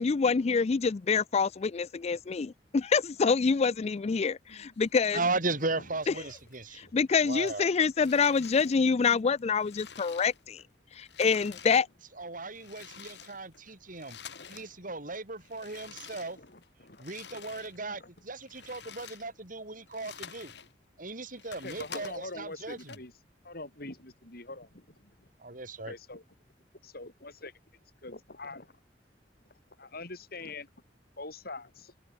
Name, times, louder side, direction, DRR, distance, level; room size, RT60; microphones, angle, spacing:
voice 1, 0.0-5.2 6.9-10.6 11.0-11.9, left 5 dB, 35° left, 0.4 m, -26 dB
sound 1, 4.5-5.7 6.0-6.8 7.1-10.7 10.9-14.7 15.0-17.8 18.2-20.7 21.1-23.0, left 7 dB, 75° left, 7.4 m, -49 dB
voice 2, 5.1-6.9 7.2-7.7 12.2-14.2 14.5-16.4 17.0-20.5 21.0-23.0 25.4-25.9, right 3 dB, 50° right, 4.9 m, -36 dB
voice 3, 14.3-14.7 16.2-17.0 17.9-18.1 21.6-23.1 23.4-25.3 25.9-26.2 26.8-27.5 28.0-28.7 29.8-30.7 31.2-31.9, left 2 dB, 60° left, 6.7 m, -44 dB
open air
head